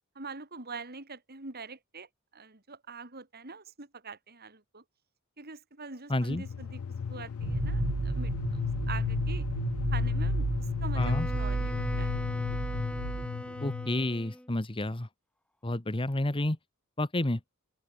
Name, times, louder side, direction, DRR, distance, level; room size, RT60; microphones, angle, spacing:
voice 1, 0.2-4.8 5.4-9.5 9.9-12.3, right 4 dB, 45° right, 3.6 m, -44 dB
voice 2, 6.1-6.4 11.0-11.3 13.6-15.1 15.6-16.6 17.0-17.4, left 1 dB, 25° left, 1.2 m, -30 dB
sound 1, 6.3-14.1, left 6 dB, 75° left, 0.4 m, -34 dB
sound 2, 7.4-13.3, right 4 dB, 70° right, 0.6 m, -33 dB
Wind instrument woodwind instrument, 11.0-14.5, equal, 5° left, 3.1 m, -41 dB
open air
head